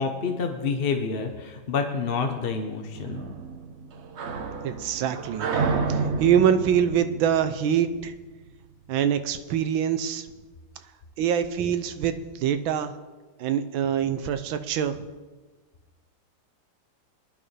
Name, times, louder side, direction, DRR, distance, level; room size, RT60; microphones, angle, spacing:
voice 1, 0.0-3.2, left 5 dB, 40° left, 4 dB, 0.8 m, -28 dB
sound 1, 2.9-8.4, right 4 dB, 55° right, 0.8 m, -30 dB
voice 2, 4.6-5.6 5.9-8.1 8.9-10.3 11.2-12.9 13.4-15.0, right 9 dB, 80° right, 10 dB, 1.5 m, -24 dB
20.0 x 11.0 x 3.4 m, 1.3 s
omnidirectional pair, 2.1 m